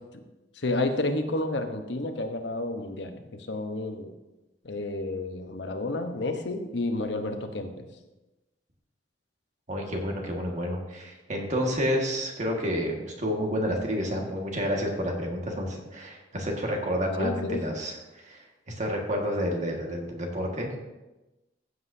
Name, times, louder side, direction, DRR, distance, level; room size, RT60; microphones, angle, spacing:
voice 1, 0.6-4.1 4.6-7.8 17.2-17.6, left 2 dB, 80° left, 6 dB, 1.0 m, -30 dB
voice 2, 9.7-20.8, equal, 45° right, 1 dB, 1.8 m, -30 dB
15.0 x 8.0 x 2.8 m, 1.0 s
head